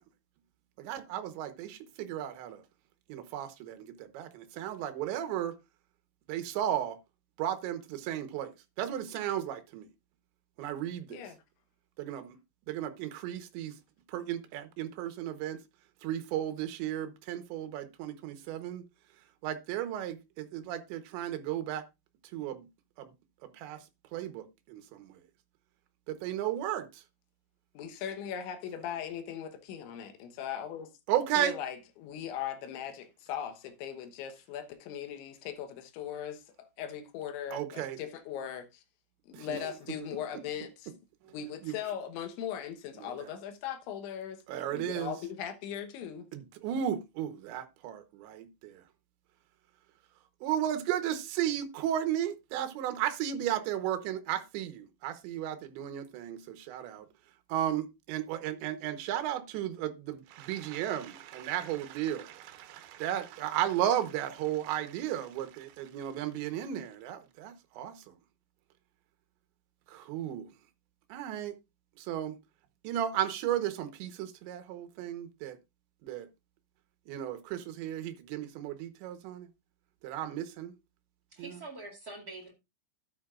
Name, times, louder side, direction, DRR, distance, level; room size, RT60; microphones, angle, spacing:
voice 1, 0.8-2.6 3.1-5.5 6.3-7.0 7.4-8.5 8.8-9.9 10.6-11.2 12.0-12.4 12.7-13.8 14.1-15.6 16.0-18.8 19.4-21.8 22.3-22.7 23.0-23.1 23.5-23.8 24.1-25.2 26.1-27.0 31.1-31.5 37.5-38.0 39.3-39.6 41.3-41.4 41.6-41.7 43.0-43.3 44.5-45.1 46.3-48.8 50.4-57.1 57.5-68.1 69.9-70.5 71.1-71.6 72.0-72.4 72.8-75.6 76.0-76.3 77.1-79.5 80.0-80.7 81.4-81.6, right 11 dB, 80° right, 3.3 m, -34 dB
voice 2, 27.8-30.9 31.4-38.8 39.3-40.9 41.3-44.4 44.7-46.3, left 9 dB, 80° left, 3.5 m, -39 dB
voice 3, 81.3-82.5, right 2 dB, 35° right, 1.5 m, -45 dB
12.5 x 9.6 x 2.5 m
omnidirectional pair, 5.3 m